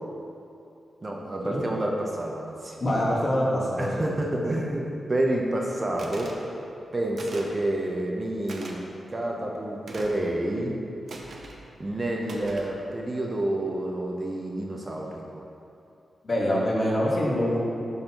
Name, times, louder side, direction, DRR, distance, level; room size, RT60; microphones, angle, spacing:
voice 1, 1.0-2.8 3.8-6.4 6.9-8.8 9.1-10.8 11.8-15.2, right 1 dB, 30° right, 0 dB, 0.7 m, -29 dB
voice 2, 2.8-4.0 16.2-17.6, equal, 35° left, -5 dB, 1.6 m, -25 dB
sound 1, 6.0-6.4 7.2-7.6 8.5-8.8 9.9-10.2 11.1-11.6 12.3-12.7, right 2 dB, 65° right, 0.7 m, -41 dB
11.5 x 4.0 x 3.0 m, 2.6 s
wide cardioid pair, 105°, 0 cm